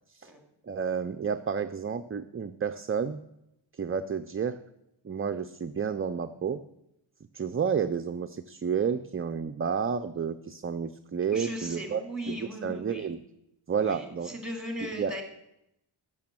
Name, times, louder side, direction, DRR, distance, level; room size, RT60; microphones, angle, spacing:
voice 1, 0.6-3.2 3.8-4.6 5.0-6.6 7.3-12.0 12.3-13.2 13.7-14.3 15.0-15.2, right 6 dB, 30° right, 8 dB, 0.4 m, -30 dB
voice 2, 11.3-13.1 13.8-15.2, equal, ahead, 3 dB, 2.6 m, -38 dB
15.0 x 6.2 x 7.5 m, 0.81 s
wide cardioid pair, 155°, 47 cm